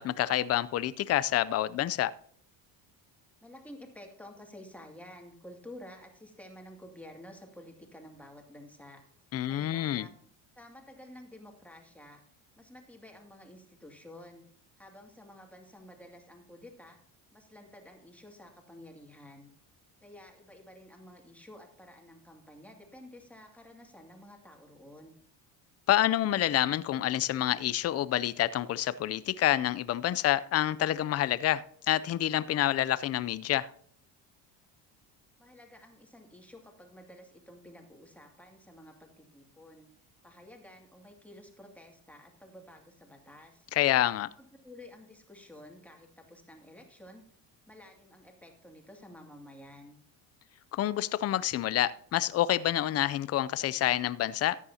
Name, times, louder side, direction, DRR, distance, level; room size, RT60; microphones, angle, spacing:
voice 1, 0.0-2.1 9.3-10.1 25.9-33.7 43.7-44.3 50.7-54.6, left 13 dB, 35° left, 0.5 m, -28 dB
voice 2, 3.4-9.0 9.5-10.1 10.6-12.2 12.6-14.4 14.8-17.0 17.3-19.5 20.0-25.2 35.4-39.9 40.2-43.7 44.4-47.3 47.7-50.0, left 1 dB, 5° left, 2.3 m, -51 dB
14.0 x 9.7 x 2.8 m
cardioid pair, 110°, 44 cm